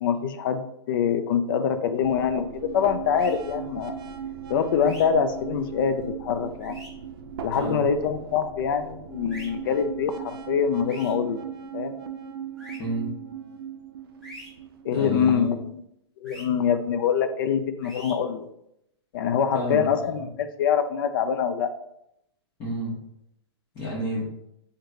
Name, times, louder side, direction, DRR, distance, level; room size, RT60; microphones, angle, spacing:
voice 1, 0.0-4.0 4.5-6.8 7.4-11.4 11.7-12.0 14.8-15.6 16.2-18.5 19.1-21.7, left 7 dB, 50° left, 9 dB, 0.4 m, -25 dB
sound 1, 2.0-15.3, right 8 dB, 55° right, 0.4 m, -38 dB
sound 2, 3.1-3.3 4.8-5.0 6.6-6.9 9.3-9.5 10.9-11.1 12.6-12.8 14.2-14.5 16.2-16.4 17.8-18.1, left 1 dB, ahead, 1.2 m, -43 dB
voice 2, 7.5-7.9 12.8-13.1 14.9-15.4 19.5-19.9 20.2-20.3 22.6-23.0 23.7-24.3, right 1 dB, 25° left, -8 dB, 1.0 m, -30 dB
3.1 x 2.2 x 3.7 m, 0.78 s
hypercardioid pair, 145°, 14 cm